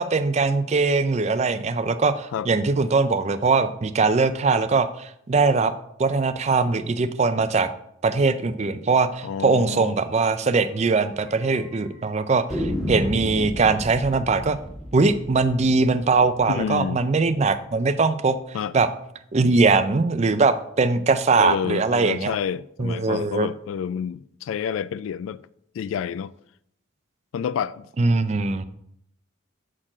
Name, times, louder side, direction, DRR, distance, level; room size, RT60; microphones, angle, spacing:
voice 1, 0.0-5.7 6.0-7.7 8.0-14.6 14.9-18.9 19.3-22.3 22.8-23.5 28.0-28.6, right 4 dB, 35° right, 0.4 m, -21 dB
voice 2, 9.2-9.9 16.5-17.0 18.5-18.7 21.4-25.4 25.7-26.3 27.3-27.9, left 7 dB, 90° left, 0.3 m, -29 dB
sound 1, 9.7-9.8 10.1-10.2 10.5-10.6 11.3-11.8 12.5-17.3, equal, ahead, 1.6 m, -33 dB
7.4 x 4.4 x 4.9 m
head